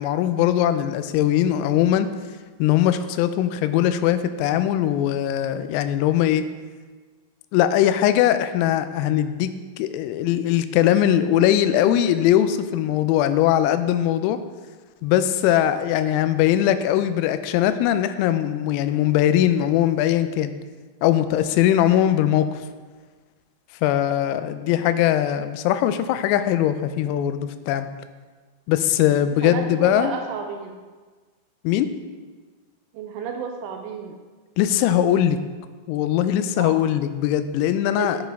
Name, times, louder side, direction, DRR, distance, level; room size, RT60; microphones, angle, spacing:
voice 1, 0.0-2.1 2.6-6.5 7.5-14.4 15.0-20.5 21.0-22.6 23.8-27.9 28.7-30.2 31.6-31.9 34.6-35.4 35.9-38.2, left 11 dB, 90° left, 11 dB, 3.2 m, -20 dB
voice 2, 24.7-25.1 29.2-30.8 32.9-34.2 36.6-36.7 38.0-38.1, right 6 dB, 85° right, 3 dB, 2.8 m, -32 dB
8.7 x 6.9 x 3.4 m, 1.4 s
omnidirectional pair, 5.9 m